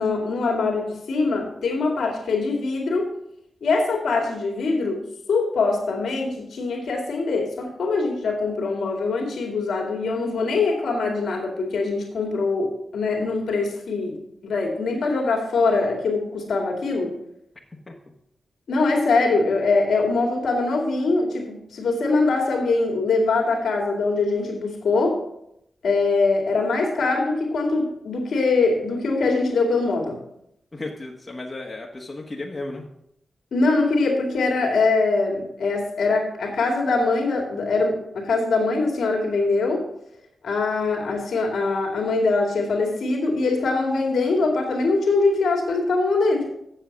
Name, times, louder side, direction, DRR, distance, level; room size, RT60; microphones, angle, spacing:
voice 1, 0.0-3.1 3.6-5.0 5.3-14.2 14.4-17.1 18.7-25.2 25.8-30.2 33.5-39.8 40.4-46.5, left 3 dB, 85° left, 1 dB, 2.3 m, -23 dB
voice 2, 30.7-32.8, left 2 dB, 35° left, -1 dB, 1.4 m, -34 dB
7.5 x 7.4 x 5.8 m, 0.77 s
cardioid pair, 55°, 0 cm